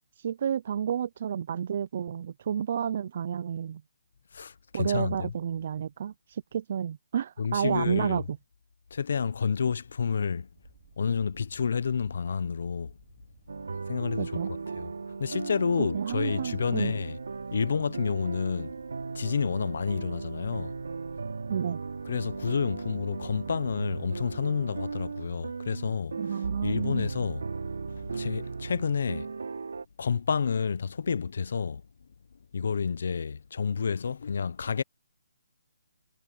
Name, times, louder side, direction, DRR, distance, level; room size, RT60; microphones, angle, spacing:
voice 1, 0.2-3.8 4.7-8.4 14.2-14.5 15.8-16.9 21.5-21.8 26.2-27.1, right 8 dB, 45° right, 0.5 m, -31 dB
voice 2, 4.3-5.3 7.4-8.2 8.9-10.5 11.0-12.9 13.9-14.3 14.8-14.9 15.2-17.2 17.5-18.7 19.1-20.7 22.1-26.2 26.6-27.4 27.9-29.3 30.0-31.8 32.5-34.8, left 6 dB, 60° left, 1.0 m, -29 dB
sound 1, 10.5-25.4, right 24 dB, 25° right, 5.7 m, -60 dB
Piano country music, 13.5-29.8, right 4 dB, 80° right, 3.5 m, -37 dB
hypercardioid pair, 165°, 0 cm